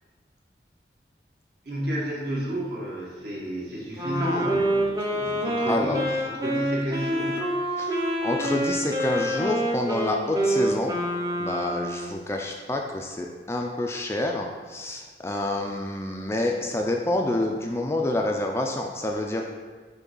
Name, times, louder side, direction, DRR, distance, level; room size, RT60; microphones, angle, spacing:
voice 1, 1.6-7.4, equal, 55° right, -4 dB, 1.4 m, -31 dB
Wind instrument woodwind instrument, 3.9-12.2, right 1 dB, 20° right, 0.7 m, -27 dB
voice 2, 5.7-6.0 7.8-11.0 11.4-19.5, left 1 dB, 15° left, 1 dB, 0.4 m, -28 dB
6.0 x 3.3 x 5.4 m, 1.5 s
head